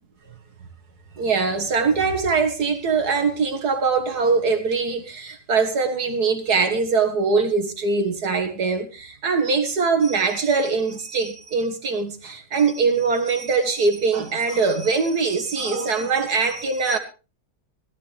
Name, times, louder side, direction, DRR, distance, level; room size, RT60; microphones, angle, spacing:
voice 1, 1.2-17.0, right 4 dB, 55° right, 2.0 m, -22 dB
18.0 x 13.0 x 3.4 m
omnidirectional pair, 2.0 m